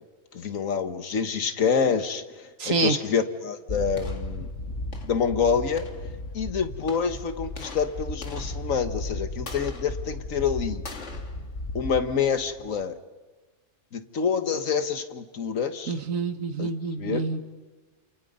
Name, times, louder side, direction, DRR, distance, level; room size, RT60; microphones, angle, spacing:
voice 1, 0.3-4.5 5.0-5.9 6.3-10.8 11.8-13.0 13.9-15.9 16.6-16.7 17.0-17.3, left 6 dB, 90° left, 9 dB, 1.7 m, -27 dB
voice 2, 2.6-3.0 15.9-17.5, right 4 dB, 85° right, 9 dB, 1.8 m, -27 dB
sound 1, 3.7-12.8, left 2 dB, 65° left, 2.3 m, -35 dB
29.0 x 28.0 x 5.4 m, 1.3 s
omnidirectional pair, 1.3 m